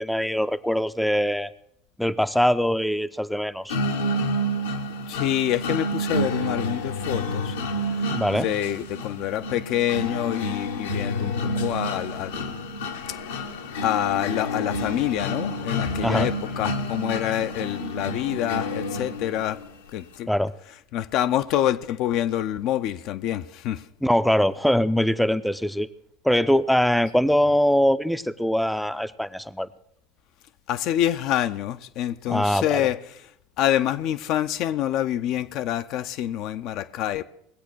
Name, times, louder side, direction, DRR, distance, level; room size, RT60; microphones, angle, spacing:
voice 1, 0.0-1.5 2.0-3.8 8.1-8.5 16.0-16.3 20.3-20.5 24.0-25.9 26.2-29.7 32.3-32.9, equal, ahead, 0.5 m, -22 dB
sound 1, 3.7-19.7, left 1 dB, 75° left, 1.1 m, -29 dB
voice 2, 5.1-7.6 8.4-12.6 13.8-19.6 19.9-20.3 20.9-23.8 30.7-33.0 33.6-37.2, left 12 dB, 55° left, 0.6 m, -26 dB
20.0 x 8.3 x 6.2 m
hypercardioid pair, 80°, 0 cm